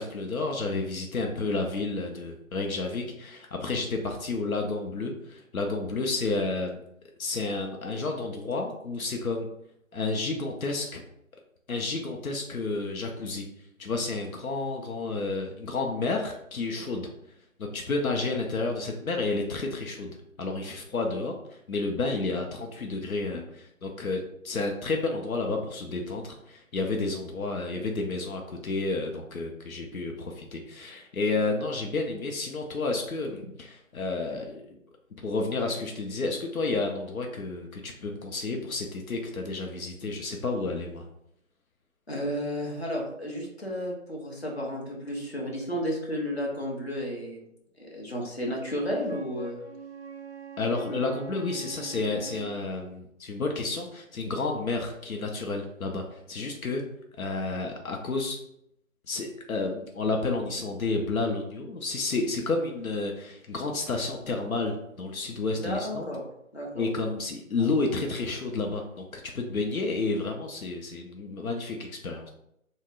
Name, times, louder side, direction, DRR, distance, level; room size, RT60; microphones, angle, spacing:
voice 1, 0.0-6.8 7.2-9.5 9.9-11.0 11.7-13.5 13.8-17.1 17.6-34.8 35.2-41.1 50.6-56.8 57.2-58.4 59.1-66.1 66.7-72.3, left 3 dB, 85° left, 2 dB, 0.6 m, -31 dB
voice 2, 42.1-47.4 47.8-49.6 65.5-66.2 66.5-66.9 67.6-67.7, equal, 50° left, -2 dB, 0.8 m, -32 dB
Wind instrument woodwind instrument, 49.0-52.6, right 5 dB, 50° right, 0.5 m, -43 dB
3.8 x 2.1 x 2.4 m, 0.76 s
figure-of-eight pair, 180°, 42 cm